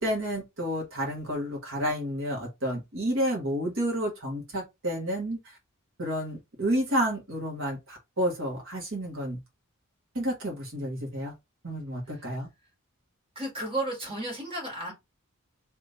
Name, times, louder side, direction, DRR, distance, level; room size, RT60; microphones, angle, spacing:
voice 1, 0.0-5.6 6.0-9.4 10.2-11.3 11.6-12.5, equal, 65° right, 1.8 m, -30 dB
voice 2, 13.4-14.9, right 1 dB, 25° right, 2.2 m, -33 dB
3.4 x 3.2 x 4.0 m
head